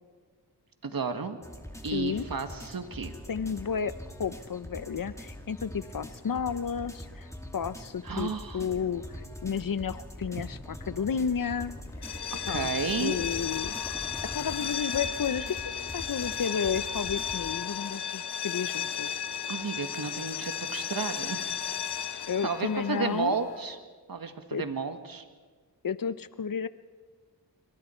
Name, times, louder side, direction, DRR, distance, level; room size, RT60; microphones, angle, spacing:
voice 1, 0.8-1.4 1.8-3.1 8.0-8.6 12.5-13.2 19.5-21.5 22.4-23.8 24.1-25.2, right 5 dB, 60° right, 7 dB, 1.8 m, -32 dB
sound 1, 1.4-17.6, equal, 5° left, 2.4 m, -43 dB
voice 2, 1.9-2.3 3.3-3.9 4.2-7.3 7.5-11.8 12.5-12.7 13.0-13.7 14.3-19.2 22.3-23.4 24.5-24.6 25.8-26.7, left 7 dB, 55° left, 15 dB, 0.8 m, -32 dB
sound 2, 12.0-23.7, left 8 dB, 80° left, 1.1 m, -34 dB
26.5 x 24.5 x 4.5 m, 1.4 s
cardioid pair, 60°, 39 cm